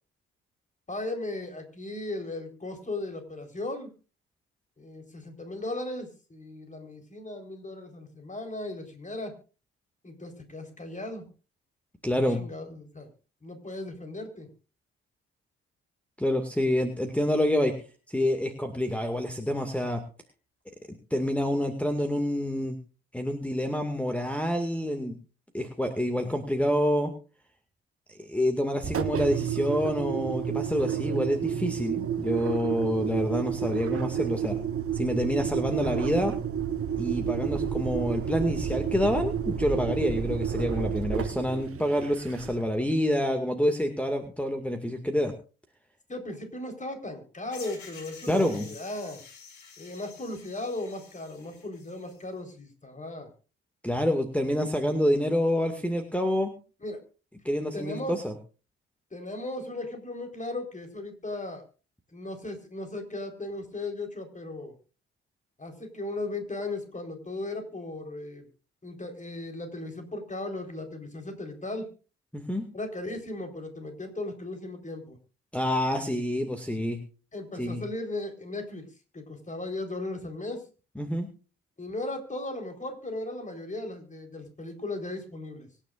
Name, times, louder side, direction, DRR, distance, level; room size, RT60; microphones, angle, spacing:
voice 1, 0.9-3.9 4.8-9.3 10.0-11.3 12.4-13.1 13.4-14.5 46.1-49.2 49.8-53.3 56.8-57.0 57.7-58.2 59.1-61.6 62.1-64.7 65.6-68.5 68.8-71.9 72.7-75.2 77.3-78.9 79.1-80.6 81.8-85.7, left 2 dB, 25° left, 5 dB, 4.3 m, -37 dB
voice 2, 12.0-12.4 16.2-17.7 18.1-20.0 21.1-22.8 23.1-25.2 25.5-27.1 28.2-34.6 34.9-36.4 37.0-45.3 48.3-48.7 53.8-56.5 57.4-58.3 72.3-72.6 75.5-77.0 77.6-77.8 81.0-81.3, equal, 5° left, 6 dB, 2.2 m, -27 dB
Engine, 28.8-42.8, right 8 dB, 45° right, 1.6 m, -30 dB
sound 1, 47.5-52.2, left 5 dB, 65° left, 4.7 m, -49 dB
25.0 x 10.0 x 2.5 m, 0.35 s
hypercardioid pair, 45°, 31 cm